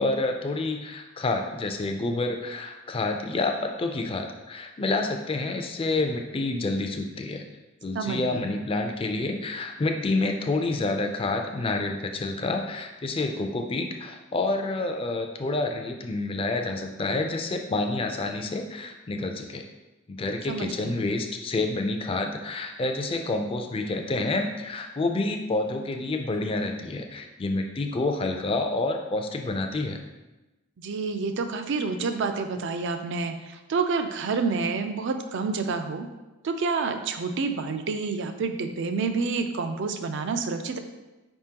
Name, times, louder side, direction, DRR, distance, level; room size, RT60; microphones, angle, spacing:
voice 1, 0.0-7.4 7.8-19.6 20.1-30.0, left 2 dB, 25° left, 4 dB, 0.4 m, -28 dB
voice 2, 7.9-8.5 20.5-21.0 30.8-36.1 36.4-40.8, right 4 dB, 60° right, 7 dB, 0.4 m, -28 dB
5.0 x 3.6 x 2.8 m, 1.1 s
head